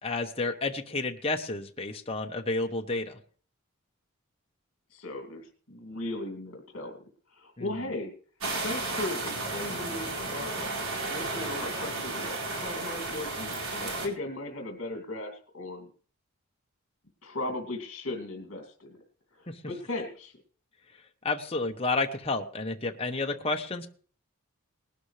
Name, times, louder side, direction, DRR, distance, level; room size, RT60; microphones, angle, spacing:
voice 1, 0.0-3.2 7.6-7.7 19.5-19.6 21.2-23.9, left 3 dB, 25° left, 4 dB, 1.0 m, -31 dB
voice 2, 4.9-7.0 7.3-8.1 8.6-10.7 11.1-15.9 17.2-19.0 19.3-20.4, left 2 dB, 55° left, 2 dB, 2.6 m, -37 dB
sound 1, 8.4-14.1, right 2 dB, 70° right, 4.1 m, -33 dB
19.5 x 12.0 x 3.3 m, 0.43 s
head